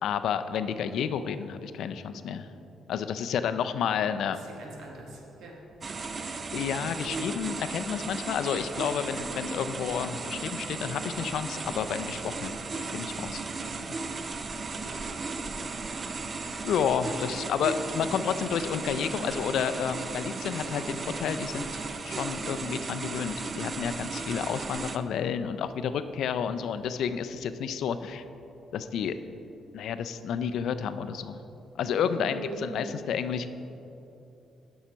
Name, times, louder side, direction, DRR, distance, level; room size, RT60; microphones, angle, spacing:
voice 1, 0.0-2.5 2.9-4.4 6.5-12.5 12.9-13.4 13.7-13.8 14.7-14.9 16.6-28.2 28.7-29.1 29.7-31.4 31.7-33.5, left 7 dB, 75° left, 11 dB, 0.3 m, -30 dB
voice 2, 4.6-5.6 9.6-9.9 14.8-15.2 32.1-32.7, right 2 dB, 75° right, 0 dB, 1.3 m, -42 dB
sound 1, 5.8-25.0, right 4 dB, 35° right, 0.4 m, -35 dB
7.2 x 5.5 x 5.1 m, 2.9 s
cardioid pair, 90°, 0 cm